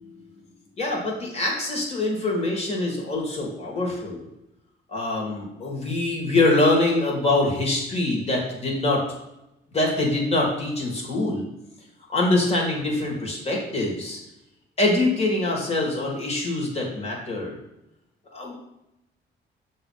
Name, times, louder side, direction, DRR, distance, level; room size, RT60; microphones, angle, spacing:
voice 1, 0.8-4.3 4.9-9.0 9.7-11.5 12.1-14.2 14.8-17.6 18.3-18.5, left 2 dB, 30° left, -2 dB, 2.2 m, -24 dB
6.5 x 3.0 x 5.7 m, 0.89 s
cardioid pair, 90°, 20 cm